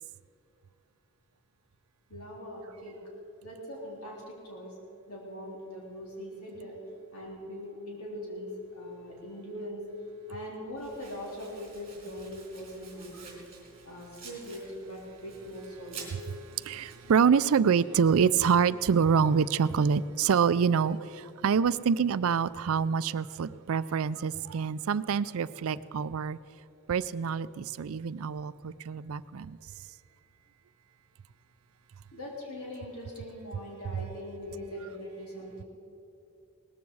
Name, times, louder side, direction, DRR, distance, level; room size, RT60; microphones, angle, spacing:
voice 1, 2.1-3.0 3.4-4.7 5.1-6.8 7.1-9.8 10.3-13.4 13.9-16.1 32.1-35.6, equal, 75° left, -3 dB, 3.7 m, -41 dB
Domestic sounds home sounds, 10.8-17.2, right 5 dB, 30° right, 3.4 m, -50 dB
voice 2, 16.6-26.4 26.9-29.6, right 6 dB, 65° right, 17 dB, 0.4 m, -26 dB
18.5 x 14.0 x 4.8 m, 2.8 s
head